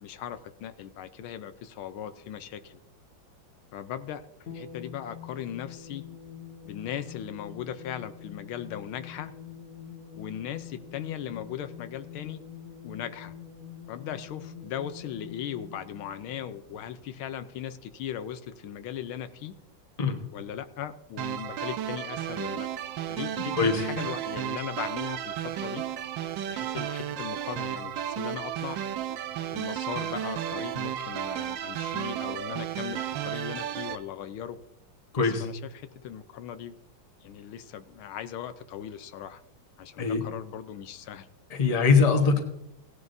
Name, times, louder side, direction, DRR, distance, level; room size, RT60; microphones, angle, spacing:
voice 1, 0.0-2.8 3.7-4.2 4.5-6.0 6.6-9.3 10.2-12.4 12.8-13.3 13.9-19.5 20.3-22.7 23.1-25.8 26.5-28.8 29.5-34.6 35.2-36.8 37.2-39.4 39.8-41.3 42.2-42.4, left 10 dB, 85° left, 11 dB, 1.6 m, -38 dB
sound 1, 4.5-17.3, left 8 dB, 45° left, 1.3 m, -45 dB
sound 2, 21.2-34.0, right 10 dB, 70° right, 1.3 m, -33 dB
voice 2, 23.5-23.8 35.1-35.5 40.0-40.2 41.5-42.4, left 5 dB, 25° left, 4 dB, 1.1 m, -22 dB
17.5 x 11.0 x 2.7 m, 0.79 s
omnidirectional pair, 2.3 m